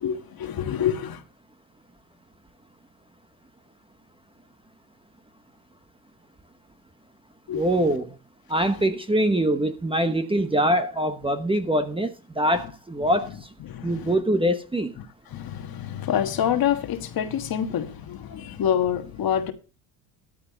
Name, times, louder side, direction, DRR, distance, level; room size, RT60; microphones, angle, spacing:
voice 1, 0.0-1.2 7.5-7.6 13.6-14.1 15.3-19.5, left 9 dB, 45° left, 1.5 m, -27 dB
voice 2, 7.5-8.1 8.5-13.3 13.8-14.9, right 1 dB, 10° right, 1.0 m, -23 dB
13.5 x 7.6 x 4.0 m
supercardioid pair, 95°, 50 cm